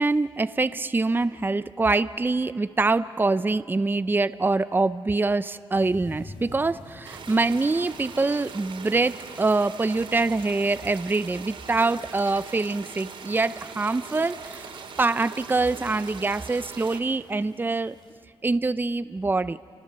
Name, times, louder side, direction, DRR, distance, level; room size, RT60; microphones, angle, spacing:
voice 1, 0.0-14.7 15.0-18.0 18.4-19.6, right 3 dB, 20° right, 13 dB, 0.7 m, -24 dB
sound 1, 5.7-18.2, left 3 dB, 55° left, 3.4 m, -51 dB
sound 2, 7.0-17.0, right 5 dB, 65° right, 3.3 m, -41 dB
29.5 x 29.5 x 6.8 m, 2.3 s
supercardioid pair, 60°, 10 cm